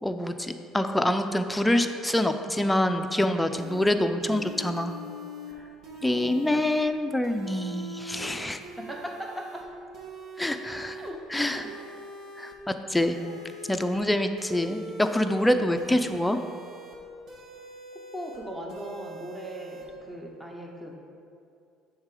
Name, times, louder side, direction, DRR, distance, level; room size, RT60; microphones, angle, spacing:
voice 1, 0.0-4.9 6.0-8.6 10.4-11.0 11.3-11.6 12.4-13.2 13.7-16.4, left 1 dB, 10° left, 7 dB, 0.4 m, -26 dB
sound 1, 3.5-3.9 4.2-5.5 5.8-6.8 7.2-8.3 8.6-9.6 9.9-11.1 11.5-12.5 12.9-14.0 14.4-15.4 15.8-17.0 17.3-18.4 18.7-19.8, right 1 dB, 60° right, 1.3 m, -43 dB
voice 2, 6.1-6.6 8.8-9.6 10.9-11.7 13.2-13.5 17.9-21.0, equal, 10° right, 0 dB, 1.0 m, -39 dB
7.1 x 3.7 x 4.9 m, 2.5 s
supercardioid pair, 75°, 0 cm